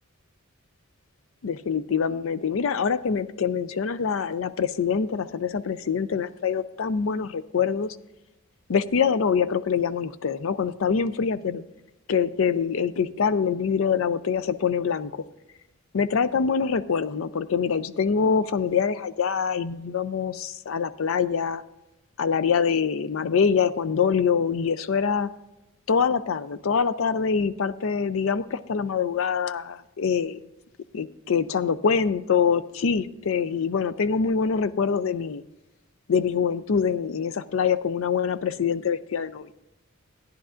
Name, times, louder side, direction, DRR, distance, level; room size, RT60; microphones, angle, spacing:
voice 1, 1.4-8.0 8.7-11.6 12.1-15.2 15.9-21.6 22.2-25.3 25.9-30.4 30.9-35.4 36.1-39.5, left 6 dB, 70° left, 13 dB, 0.4 m, -24 dB
14.5 x 10.5 x 2.5 m, 0.93 s
head